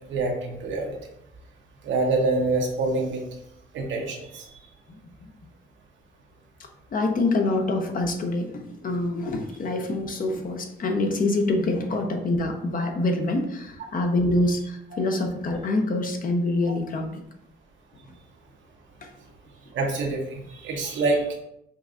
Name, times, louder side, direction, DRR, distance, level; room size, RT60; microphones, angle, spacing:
voice 1, 0.1-1.0 1.8-3.2 3.7-4.5 14.9-15.0 19.7-21.3, right 3 dB, 70° right, 1 dB, 0.9 m, -26 dB
voice 2, 6.9-17.2, left 2 dB, 45° left, 4 dB, 0.7 m, -25 dB
5.3 x 2.6 x 2.5 m, 0.79 s
cardioid pair, 90°, 20 cm